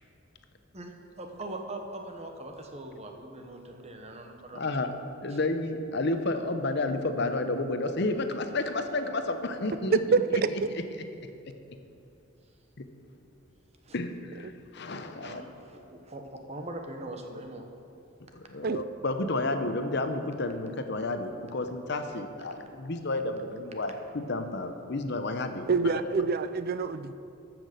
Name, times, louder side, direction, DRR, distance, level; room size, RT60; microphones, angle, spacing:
voice 1, 0.7-4.6 5.3-5.4 13.8-14.0 15.2-17.6, right 1 dB, 30° right, 3 dB, 1.1 m, -41 dB
voice 2, 4.5-4.9 5.2-10.0 12.8-12.9 13.9-15.4 18.3-25.9, left 2 dB, 55° left, 8 dB, 0.8 m, -31 dB
voice 3, 9.9-10.2 14.4-14.5 18.6-18.8 25.7-27.1, right 4 dB, 45° right, 12 dB, 0.4 m, -26 dB
14.0 x 6.1 x 6.7 m, 2.6 s
head